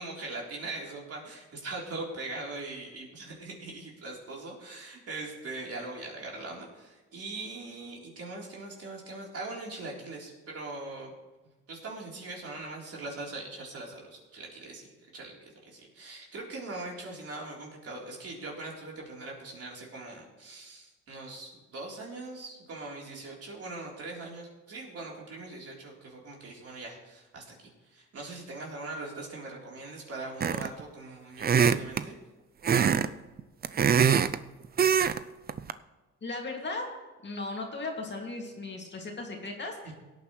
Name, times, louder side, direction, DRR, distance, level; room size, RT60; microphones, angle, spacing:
voice 1, 0.0-11.1 11.7-14.9 15.1-32.1 39.8-39.9, right 2 dB, 50° right, -2 dB, 3.8 m, -41 dB
sound 1, 30.4-30.8 31.4-32.0 32.6-33.1 33.4-34.4 34.8-35.2 35.5-35.7, right 7 dB, 30° right, 0.5 m, -23 dB
voice 2, 36.2-36.9 37.2-39.9, left 3 dB, 35° left, 1 dB, 2.4 m, -36 dB
17.5 x 9.3 x 3.2 m, 1.2 s
cardioid pair, 90°, 30 cm